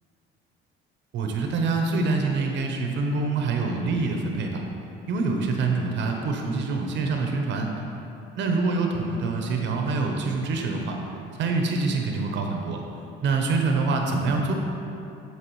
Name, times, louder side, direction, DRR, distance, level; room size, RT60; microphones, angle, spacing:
voice 1, 1.1-4.6 5.1-7.7 8.4-11.0 11.4-12.8 13.2-14.5, right 3 dB, 60° right, 2 dB, 0.7 m, -25 dB
9.9 x 4.7 x 3.1 m, 2.8 s
cardioid pair, 110°, 21 cm